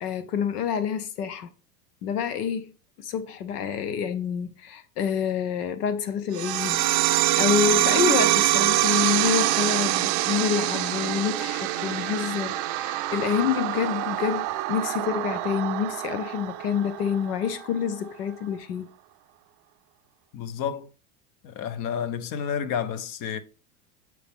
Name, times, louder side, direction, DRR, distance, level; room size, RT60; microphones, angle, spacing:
voice 1, 0.0-1.5 2.0-2.7 3.0-18.9, left 8 dB, 85° left, 0.9 m, -28 dB
sound 1, 6.3-17.4, right 18 dB, 45° right, 0.5 m, -25 dB
sound 2, 6.4-18.6, right 5 dB, 5° left, 1.9 m, -42 dB
voice 2, 20.3-20.9 21.4-23.4, left 8 dB, 45° left, 1.0 m, -30 dB
8.1 x 4.6 x 3.6 m
hypercardioid pair, 110°, 45 cm